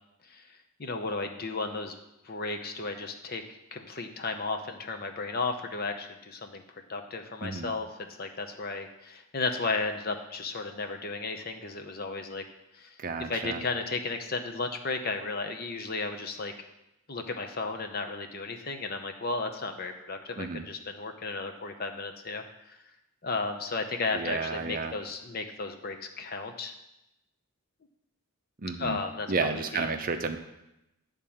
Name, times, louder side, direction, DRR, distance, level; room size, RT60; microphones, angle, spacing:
voice 1, 0.8-1.9 2.2-3.4 3.7-6.6 6.9-12.4 12.7-12.9 13.3-16.5 17.1-22.8 23.2-26.7 28.8-29.9, left 3 dB, 45° left, 5 dB, 0.8 m, -34 dB
voice 2, 13.0-13.6 20.4-20.7 24.1-24.9 28.6-29.0 29.3-30.4, right 4 dB, 40° right, 7 dB, 0.6 m, -31 dB
10.0 x 3.7 x 7.0 m, 0.90 s
head